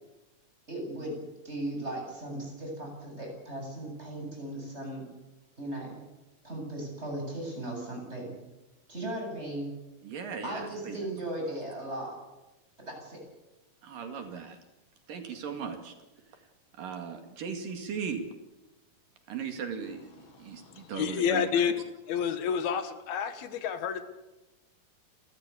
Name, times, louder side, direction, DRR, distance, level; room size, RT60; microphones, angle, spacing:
voice 1, 0.7-1.2 1.4-5.0 5.6-6.0 6.4-8.3 8.9-9.7 10.4-12.2 12.8-13.2, right 1 dB, 15° right, 0 dB, 8.3 m, -37 dB
voice 2, 10.0-11.0 13.8-14.6 15.1-15.9 16.8-18.2 19.3-21.5, right 6 dB, 70° right, 5 dB, 3.9 m, -37 dB
voice 3, 20.5-21.7 22.1-24.0, left 7 dB, 90° left, 10 dB, 3.5 m, -29 dB
29.5 x 14.0 x 8.4 m, 1.0 s
omnidirectional pair, 4.2 m